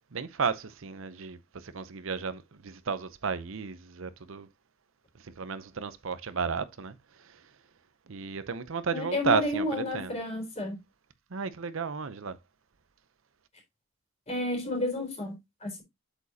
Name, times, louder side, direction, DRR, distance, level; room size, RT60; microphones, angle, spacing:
voice 1, 0.1-1.4 1.6-4.5 5.4-6.9 8.1-9.6 9.9-10.1 11.3-12.4, right 5 dB, 70° right, 0.7 m, -32 dB
voice 2, 8.9-10.8 14.3-15.8, left 2 dB, 30° left, 3.6 m, -31 dB
8.1 x 7.2 x 2.8 m
head